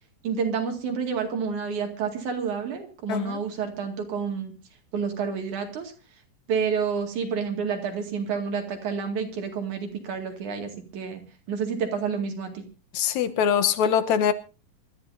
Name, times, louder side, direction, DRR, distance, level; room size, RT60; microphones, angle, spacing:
voice 1, 0.2-4.5 4.9-5.9 6.5-11.2 11.5-12.7, right 6 dB, 70° right, 3.6 m, -29 dB
voice 2, 3.1-3.4 12.9-14.3, left 8 dB, 70° left, 2.2 m, -23 dB
26.5 x 13.0 x 2.7 m
omnidirectional pair, 3.7 m